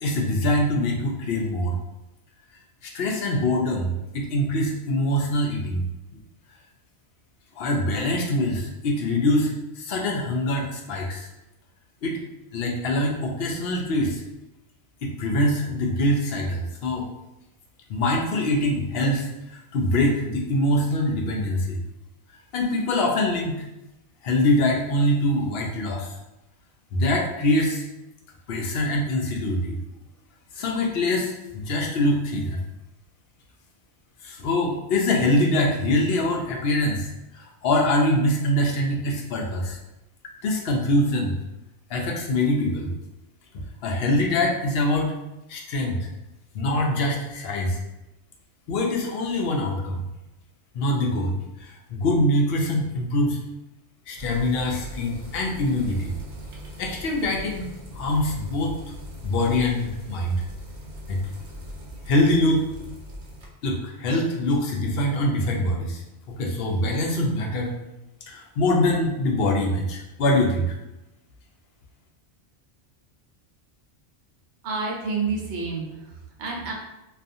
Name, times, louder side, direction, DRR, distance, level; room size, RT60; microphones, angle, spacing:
voice 1, 0.0-1.7 2.8-5.9 7.6-11.3 12.0-12.2 12.5-14.2 15.0-17.1 17.9-21.8 22.5-23.6 24.2-26.1 26.9-27.8 28.5-29.8 30.6-32.6 34.2-39.8 40.4-41.3 41.9-42.9 43.8-45.1 45.5-46.0 46.5-47.8 48.7-50.0 50.7-53.4 54.1-56.1 56.8-57.7 57.9-58.7 59.2-60.4 61.1-61.2 62.1-62.7 63.6-66.0 66.3-67.7 68.3-70.7, left 1 dB, 65° left, 0 dB, 0.7 m, -24 dB
sound 1, 54.2-63.5, equal, 55° right, 0.6 m, -40 dB
voice 2, 74.6-76.7, right 4 dB, 75° right, -2 dB, 1.0 m, -29 dB
2.5 x 2.3 x 2.5 m, 0.95 s
omnidirectional pair, 1.2 m